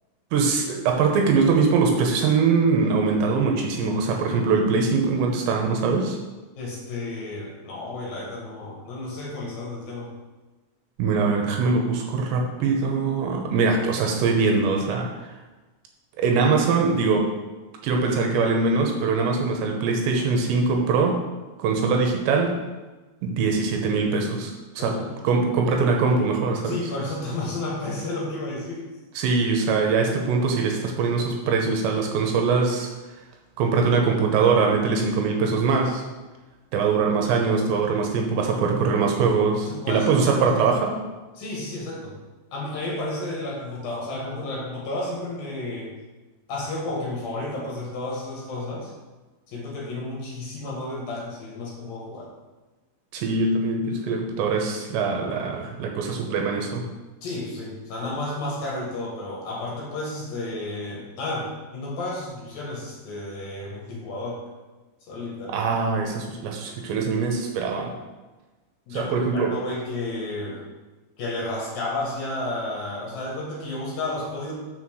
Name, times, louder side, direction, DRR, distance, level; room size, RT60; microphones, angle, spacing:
voice 1, 0.3-6.2 11.0-15.1 16.2-17.3 17.8-21.2 21.6-22.5 23.2-24.9 25.2-26.8 29.2-32.9 33.6-36.0 36.7-41.0 53.1-56.9 65.5-67.9 68.9-69.5, right 4 dB, 80° right, 2 dB, 3.0 m, -22 dB
voice 2, 6.6-10.1 24.8-25.2 26.6-28.8 39.7-40.6 41.3-42.2 42.5-45.9 46.5-48.9 49.5-52.3 57.2-64.4 65.1-65.7 68.9-70.7 71.2-74.5, left 2 dB, 60° left, -4 dB, 3.0 m, -32 dB
6.4 x 5.8 x 6.3 m, 1.2 s
omnidirectional pair, 5.3 m